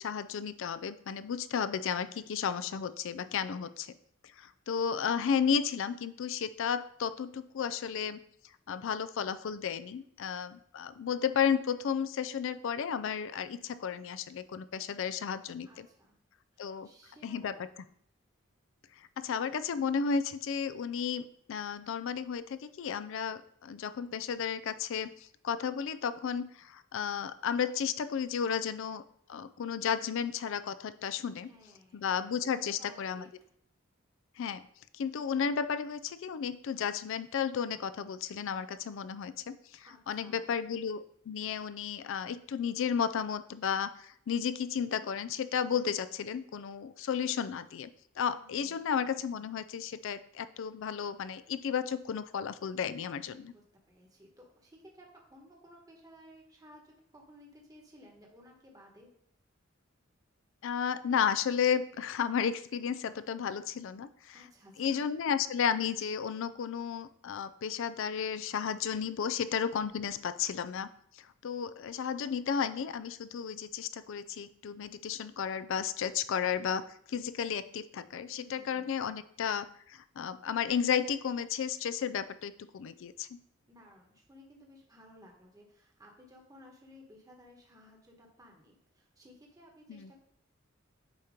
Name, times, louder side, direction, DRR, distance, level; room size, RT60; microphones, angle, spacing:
voice 1, 0.0-3.9 4.4-8.2 8.7-15.9 16.6-16.9 17.2-17.5 19.0-29.0 29.3-31.5 31.9-33.3 34.4-34.6 34.9-47.9 48.2-53.5 60.6-64.4 64.8-70.9 71.1-83.4 89.9-90.1, left 7 dB, 65° left, 13 dB, 0.4 m, -33 dB
voice 2, 15.6-16.2 16.5-17.6 31.4-32.1 32.5-33.3 39.8-40.5 48.4-48.8 53.5-59.1 64.3-65.1 78.3-78.9 83.6-90.2, equal, 20° right, -1 dB, 1.2 m, -57 dB
8.3 x 2.9 x 5.1 m, 0.67 s
head